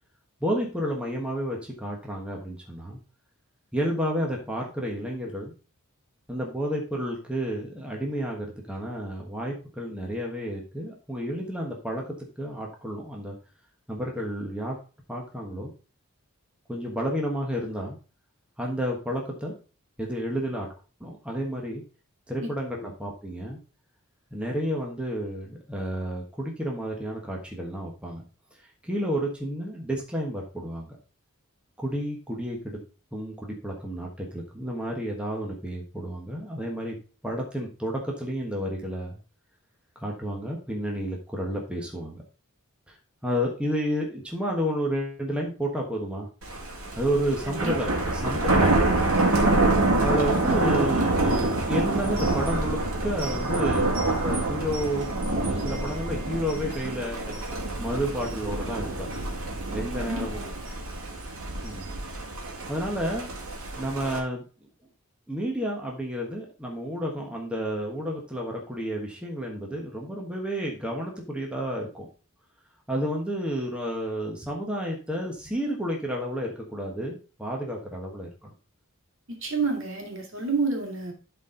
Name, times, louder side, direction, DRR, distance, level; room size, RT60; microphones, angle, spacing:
voice 1, 0.4-3.0 3.7-5.5 6.3-12.0 12.4-13.4 13.9-14.8 15.1-15.7 16.7-18.0 18.6-19.5 20.0-20.7 21.0-21.8 22.3-23.6 24.3-28.2 28.8-31.0 31.8-32.8 33.1-36.9 37.2-39.2 39.9-42.2 42.9-43.0 43.2-46.3 47.0-48.0 48.2-48.8 50.0-57.4 57.8-59.1 59.7-60.4 61.6-61.9 62.7-63.3 63.8-64.4 65.3-72.1 72.9-78.5, equal, 5° right, -1 dB, 1.2 m, -31 dB
Thunder, 46.4-64.2, right 2 dB, 80° right, 2.1 m, -26 dB
voice 2, 60.0-60.5 79.3-81.1, right 4 dB, 60° right, 1 dB, 2.5 m, -29 dB
11.5 x 4.3 x 3.8 m, 0.35 s
head